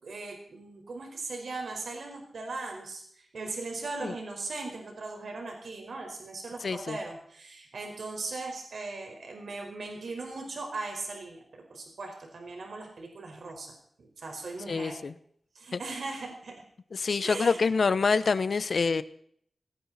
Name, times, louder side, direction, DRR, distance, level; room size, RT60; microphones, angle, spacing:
voice 1, 0.0-13.7 14.0-15.0 15.5-16.5 17.2-17.7, right 3 dB, 80° right, 2 dB, 4.9 m, -39 dB
voice 2, 6.6-7.0 14.7-15.1 15.7-15.8 16.9-19.0, left 4 dB, 65° left, 14 dB, 1.0 m, -26 dB
19.0 x 16.5 x 4.3 m, 0.64 s
wide cardioid pair, 105°, 0 cm